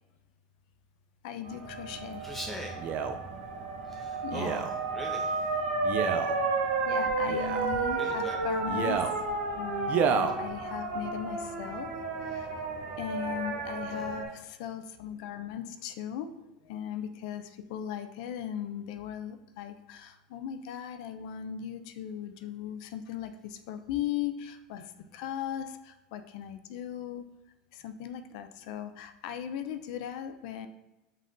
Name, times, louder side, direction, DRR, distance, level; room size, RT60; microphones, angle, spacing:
voice 1, 1.2-2.3 4.2-4.7 6.9-9.0 9.6-12.6 13.0-16.3 16.6-27.2 27.7-30.7, left 9 dB, 70° left, 9 dB, 0.4 m, -38 dB
sound 1, 1.4-14.2, right 3 dB, 80° right, 1.3 m, -32 dB
voice 2, 2.2-2.8 3.9-5.5 8.0-8.4 13.9-14.1, equal, 5° left, 0 dB, 0.6 m, -41 dB
Male speech man speaking, 2.8-3.2 4.3-4.7 5.8-6.3 7.3-7.7 8.7-9.1 9.9-10.4 11.1-11.2, right 6 dB, 45° right, 0.4 m, -29 dB
5.4 x 2.5 x 3.8 m, 1.0 s
supercardioid pair, 115°, 4 cm